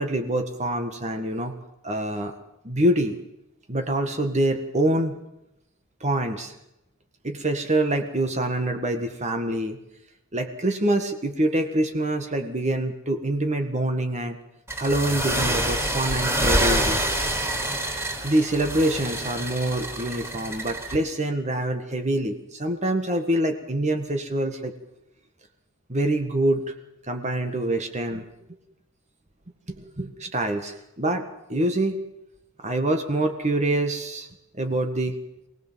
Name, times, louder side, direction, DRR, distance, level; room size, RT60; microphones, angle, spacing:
voice 1, 0.0-1.6 1.8-2.3 2.6-3.1 3.7-5.2 6.0-6.5 7.2-9.8 10.3-14.4 14.8-17.0 18.2-24.7 25.9-26.7 27.1-28.3 29.7-31.2 31.5-32.0 32.6-34.3 34.5-35.2, right 1 dB, 35° right, 5 dB, 1.8 m, -25 dB
sound 1, 14.7-21.0, right 1 dB, 10° right, 4.1 m, -26 dB
24.5 x 18.0 x 7.5 m, 0.87 s
head